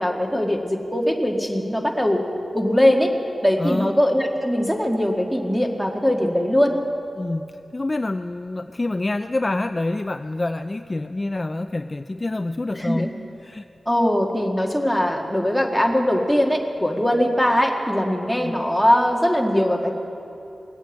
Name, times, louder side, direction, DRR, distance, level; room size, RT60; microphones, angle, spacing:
voice 1, 0.0-2.2 2.5-3.1 3.4-6.8 12.7-13.1 13.9-19.9, equal, ahead, 1 dB, 1.8 m, -21 dB
voice 2, 3.6-3.9 7.2-13.1 13.4-13.6 18.4-18.6, left 2 dB, 30° left, 9 dB, 0.4 m, -27 dB
19.0 x 8.8 x 8.3 m, 2.8 s
wide cardioid pair, 75°, 0 cm